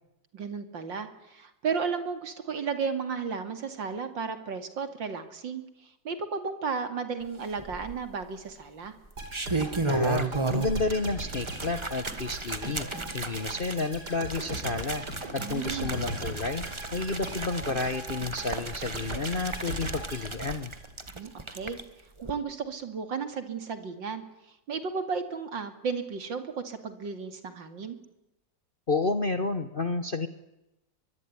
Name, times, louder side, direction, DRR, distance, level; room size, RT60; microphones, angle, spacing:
voice 1, 0.3-8.9 15.4-15.9 21.1-21.8 22.2-24.2 24.7-28.0, right 5 dB, 85° right, 9 dB, 3.2 m, -34 dB
sound 1, 7.6-8.2 9.1-10.9 11.2-21.8 22.2-22.3, right 3 dB, 15° right, 1.4 m, -34 dB
sound 2, 9.2-21.2 21.5-21.6, right 2 dB, 60° right, 5.2 m, -39 dB
voice 2, 9.9-12.9 13.1-15.0 15.3-16.6 16.9-20.7 28.9-30.3, left 3 dB, 35° left, 10 dB, 1.2 m, -31 dB
23.5 x 22.5 x 9.7 m, 0.91 s
omnidirectional pair, 2.0 m